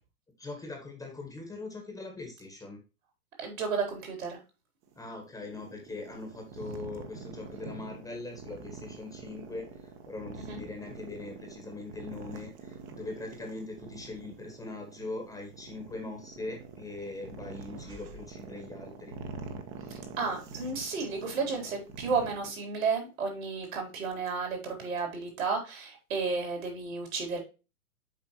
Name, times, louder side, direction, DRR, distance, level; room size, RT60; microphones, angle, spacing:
voice 1, 0.4-2.8 4.9-19.2, left 3 dB, 5° left, 2 dB, 1.5 m, -41 dB
voice 2, 3.4-4.4 10.4-10.6 20.2-27.4, right 4 dB, 65° right, 2 dB, 4.0 m, -32 dB
sound 1, 4.8-22.5, right 5 dB, 30° right, 1.3 m, -45 dB
7.4 x 5.1 x 3.1 m, 0.30 s
figure-of-eight pair, 115°, 44 cm